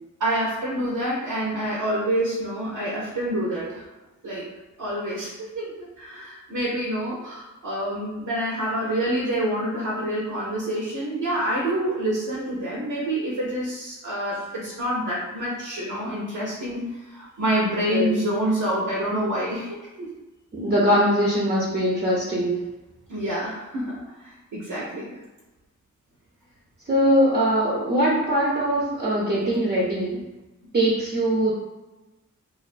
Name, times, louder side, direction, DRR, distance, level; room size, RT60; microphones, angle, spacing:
voice 1, 0.2-3.9 4.2-4.5 4.8-20.1 23.1-25.0, right 1 dB, 85° right, -5 dB, 0.6 m, -27 dB
voice 2, 17.9-18.3 20.5-22.6 26.9-30.2 30.7-31.5, equal, 35° right, -5 dB, 0.5 m, -22 dB
2.3 x 2.2 x 2.4 m, 1.1 s
cardioid pair, 60°, 31 cm